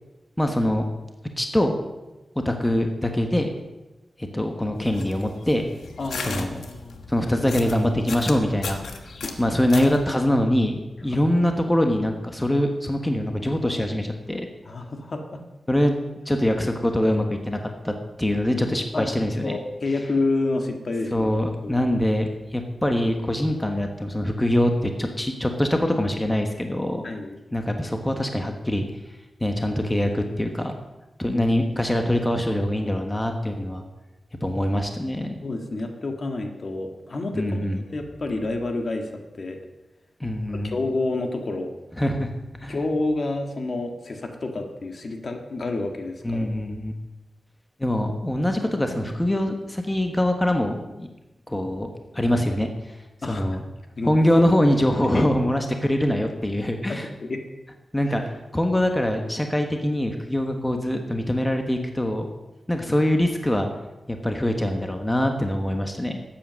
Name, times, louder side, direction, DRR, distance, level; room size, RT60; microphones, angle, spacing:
voice 1, 0.4-0.8 1.4-1.8 2.3-3.5 4.2-5.7 6.2-6.6 7.1-8.8 9.4-14.5 15.7-15.9 16.3-17.6 17.8-19.6 21.1-27.0 27.5-28.9 29.4-30.8 31.2-33.8 34.4-35.4 37.3-37.8 40.2-40.8 42.0-42.3 42.6-42.7 46.2-46.9 47.8-51.1 51.5-51.9 52.1-52.7 53.2-53.6 54.0-57.1 57.9-62.3 62.7-63.7 64.1-66.2, left 1 dB, 15° left, 4 dB, 1.2 m, -23 dB
sound 1, 4.7-10.1, left 4 dB, 85° left, 1.3 m, -37 dB
voice 2, 6.0-7.0 9.2-9.3 11.1-11.2 14.6-15.4 18.9-19.1 19.4-21.3 21.6-21.9 27.0-27.4 31.3-31.6 35.4-39.6 40.5-41.7 42.7-46.5 53.2-53.5 54.0-54.1 55.1-55.2 56.9-57.4 58.1-58.2, left 2 dB, 50° left, 4 dB, 1.7 m, -29 dB
12.5 x 8.8 x 6.4 m, 1.1 s
wide cardioid pair, 95°, 0 cm